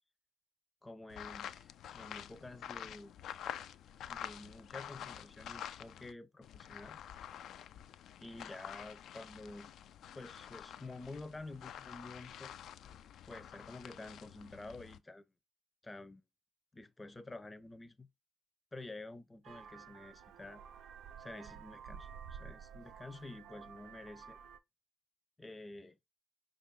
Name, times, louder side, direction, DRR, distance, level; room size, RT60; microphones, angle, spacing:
voice 1, 0.8-3.1 4.1-7.0 8.2-9.7 10.1-12.5 13.2-15.2 15.8-16.2 16.7-18.1 18.7-20.6 21.2-24.4 25.4-26.0, left 2 dB, 20° left, 0.6 m, -49 dB
sound 1, 1.1-6.1 6.4-15.0, left 10 dB, 65° left, 0.3 m, -48 dB
Vehicle horn car horn honking, 19.4-24.6, right 7 dB, 65° right, 0.5 m, -52 dB
5.2 x 2.6 x 3.4 m
hypercardioid pair, 45°, 0 cm